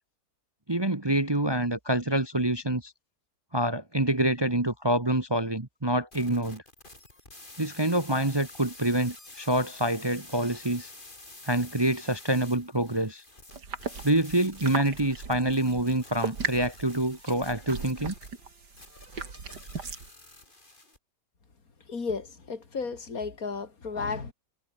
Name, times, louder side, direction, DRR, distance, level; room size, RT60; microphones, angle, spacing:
voice 1, 0.7-2.9 3.5-6.6 7.6-10.9 11.4-13.2 14.0-18.1, right 1 dB, 15° right, 1.4 m, -26 dB
sound 1, 6.1-21.0, left 2 dB, 30° left, 4.4 m, -49 dB
sound 2, 13.5-20.1, right 5 dB, 85° right, 3.3 m, -38 dB
voice 2, 21.9-24.3, left 4 dB, 60° left, 3.4 m, -33 dB
omnidirectional pair, 1.7 m